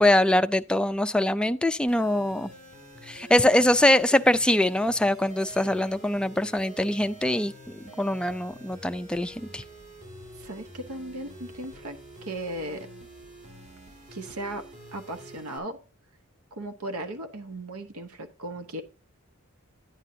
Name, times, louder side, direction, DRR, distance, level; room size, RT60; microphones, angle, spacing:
voice 1, 0.0-2.5 3.1-7.5 8.0-9.6, left 1 dB, 5° left, 0.4 m, -23 dB
sound 1, 1.9-15.6, right 1 dB, 35° right, 2.5 m, -47 dB
voice 2, 10.4-12.9 14.1-14.7 14.9-15.8 16.5-18.8, right 1 dB, 85° right, 1.0 m, -37 dB
11.0 x 9.2 x 2.7 m
head